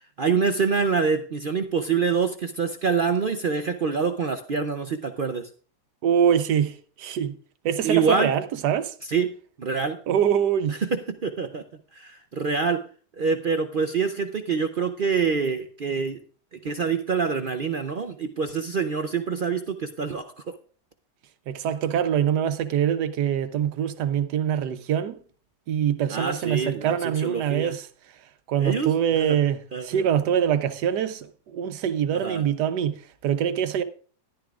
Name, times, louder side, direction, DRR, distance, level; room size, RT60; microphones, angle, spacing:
voice 1, 0.2-5.5 7.8-8.3 9.1-9.3 9.6-10.0 10.7-11.6 11.9-12.8 13.2-16.2 16.5-20.5 26.1-27.7 28.6-29.4 29.7-30.1 32.1-32.4, right 5 dB, 60° right, 0.5 m, -26 dB
voice 2, 6.0-7.4 7.6-8.9 10.1-10.8 21.5-25.2 25.7-27.9 28.5-33.8, right 9 dB, 85° right, 1.3 m, -24 dB
13.5 x 11.5 x 2.4 m
omnidirectional pair, 1.7 m